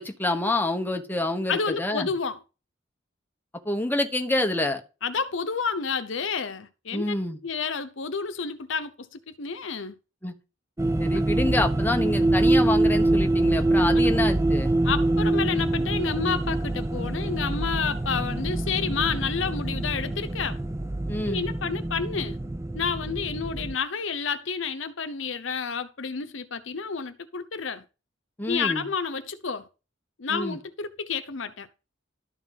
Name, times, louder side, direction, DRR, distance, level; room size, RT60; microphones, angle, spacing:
voice 1, 0.0-2.1 3.6-4.8 6.9-7.4 10.2-10.3 11.0-14.7 21.1-21.5 28.4-28.9 30.3-30.6, left 2 dB, 10° left, 1.2 m, -27 dB
voice 2, 1.5-2.4 5.0-7.1 7.4-10.0 13.9-14.1 14.8-20.6 21.2-22.4 22.7-27.8 28.5-29.7 30.2-31.7, left 5 dB, 70° left, 0.8 m, -30 dB
sound 1, 10.8-23.7, right 2 dB, 15° right, 0.5 m, -25 dB
12.5 x 4.6 x 5.5 m
head